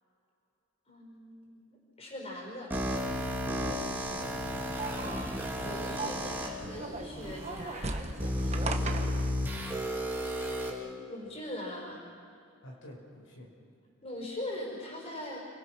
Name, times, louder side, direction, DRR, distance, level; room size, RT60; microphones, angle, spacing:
voice 1, 0.9-1.7 2.0-3.0 4.8-5.3 5.6-9.0 10.7-12.0 14.0-15.4, left 1 dB, 30° left, -1 dB, 5.6 m, -42 dB
sound 1, 2.7-6.5 7.2-7.3 8.2-10.7, equal, 10° right, 2.8 m, -33 dB
sound 2, 2.7-9.3, right 2 dB, 35° right, 1.4 m, -40 dB
voice 2, 3.7-5.1 12.6-13.5, left 1 dB, 80° left, -1 dB, 5.2 m, -49 dB
29.5 x 20.5 x 6.1 m, 2.5 s
head